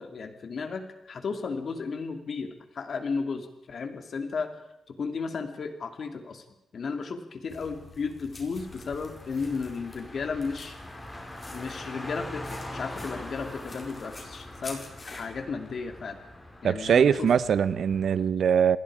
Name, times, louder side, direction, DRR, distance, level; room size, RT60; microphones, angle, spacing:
voice 1, 0.0-4.5 4.9-6.4 6.7-10.8 11.5-16.2 16.6-17.3, left 5 dB, 50° left, 2.8 m, -34 dB
sound 1, 7.5-15.3, left 2 dB, 30° left, 4.6 m, -48 dB
Car, 8.6-18.1, left 1 dB, 15° left, 4.4 m, -43 dB
voice 2, 16.6-18.8, right 7 dB, 65° right, 0.8 m, -22 dB
28.0 x 21.0 x 5.0 m
wide cardioid pair, 140°, 0 cm